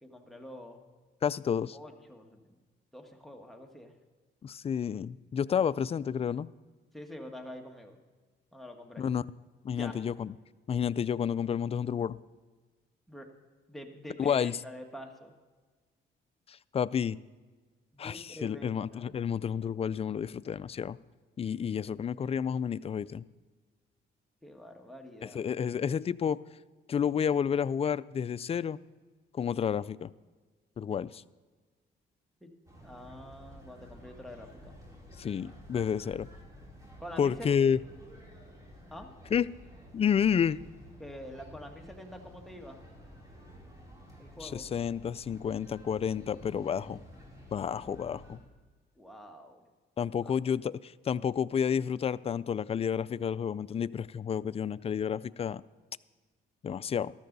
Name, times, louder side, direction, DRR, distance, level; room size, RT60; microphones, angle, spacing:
voice 1, 0.0-0.9 1.7-2.6 2.9-3.9 6.9-8.0 8.5-9.0 9.7-9.9 13.1-13.3 13.7-15.3 17.9-19.1 24.4-25.4 32.4-32.5 32.8-34.7 37.0-37.5 38.9-39.1 41.0-42.8 44.2-44.6 48.9-49.7 50.0-50.3, left 1 dB, ahead, 2 dB, 1.6 m, -46 dB
voice 2, 1.2-1.8 4.4-6.5 9.0-9.2 9.6-10.3 10.7-12.2 14.2-14.6 16.5-17.2 18.0-21.0 21.4-23.2 25.3-26.4 26.9-28.8 29.3-30.1 30.8-31.2 35.2-36.3 37.2-37.8 39.3-39.5 39.9-40.6 44.4-47.0 47.5-48.4 50.0-55.6 56.6-57.1, left 7 dB, 30° left, 17 dB, 0.3 m, -30 dB
sound 1, 32.7-48.4, equal, 15° right, 4.6 m, -52 dB
13.5 x 12.5 x 4.0 m, 1.4 s
cardioid pair, 90°, 20 cm